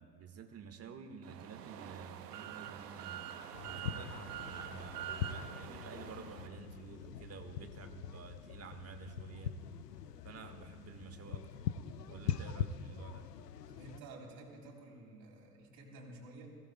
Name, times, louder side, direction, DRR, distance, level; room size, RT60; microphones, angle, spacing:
voice 1, 0.0-3.3 3.6-9.6 10.2-11.6 12.1-13.3, right 6 dB, 30° right, 7 dB, 1.6 m, -50 dB
sound 1, 1.2-6.5, right 9 dB, 75° right, 1.0 m, -46 dB
sound 2, 3.5-14.0, left 8 dB, 85° left, 0.7 m, -42 dB
voice 2, 13.6-16.5, right 2 dB, 45° right, -1 dB, 3.6 m, -52 dB
23.0 x 16.5 x 2.3 m, 2.2 s
hypercardioid pair, 75°, 47 cm